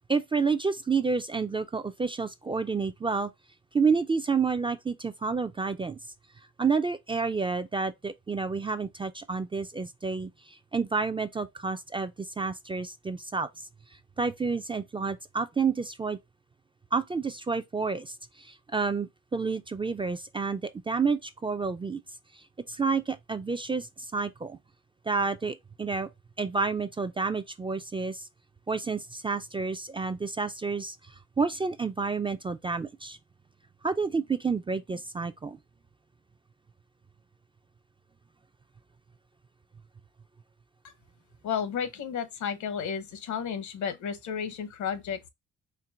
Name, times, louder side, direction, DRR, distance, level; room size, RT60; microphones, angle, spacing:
voice 1, 0.1-3.3 3.7-6.0 6.6-13.5 14.2-16.2 16.9-22.0 22.4-24.6 25.1-26.1 26.4-28.3 28.7-33.2 33.8-35.6, right 4 dB, 15° right, 0.3 m, -29 dB
voice 2, 41.4-45.3, left 7 dB, 70° left, 0.9 m, -32 dB
4.5 x 3.3 x 2.4 m
cardioid pair, 90°, 30 cm